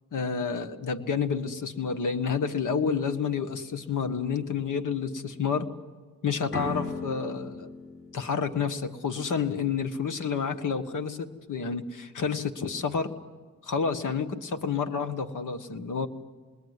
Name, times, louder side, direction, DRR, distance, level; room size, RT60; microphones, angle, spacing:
voice 1, 0.1-5.7 6.2-7.7 8.1-13.1 13.6-16.1, left 6 dB, 90° left, 9 dB, 1.4 m, -29 dB
sound 1, 6.5-9.4, left 3 dB, 45° left, 4.8 m, -38 dB
27.0 x 21.0 x 9.6 m, 1.5 s
cardioid pair, 60°, 30 cm